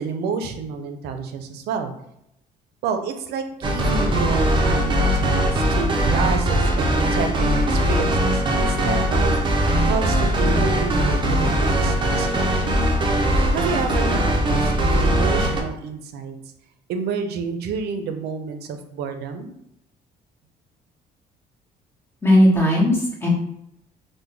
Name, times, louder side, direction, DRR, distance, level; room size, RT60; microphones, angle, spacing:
voice 1, 0.0-1.9 2.8-9.3 9.8-12.8 13.5-16.4 16.9-19.5, right 5 dB, 75° right, 7 dB, 0.5 m, -29 dB
sound 1, 3.6-15.6, right 1 dB, 30° right, 0.6 m, -20 dB
voice 2, 22.2-23.3, left 1 dB, 15° left, -4 dB, 1.2 m, -17 dB
3.4 x 2.2 x 3.1 m, 0.76 s
cardioid pair, 110°, 17 cm